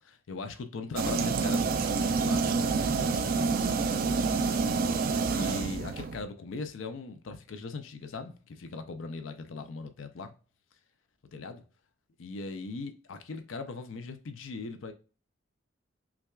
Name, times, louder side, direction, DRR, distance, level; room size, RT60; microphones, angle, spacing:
voice 1, 0.0-4.6 5.3-10.3 11.3-11.6 12.2-14.9, left 3 dB, 80° left, 0.5 m, -40 dB
sound 1, 1.0-6.2, right 4 dB, 45° right, 0.3 m, -28 dB
5.8 x 2.3 x 2.3 m
head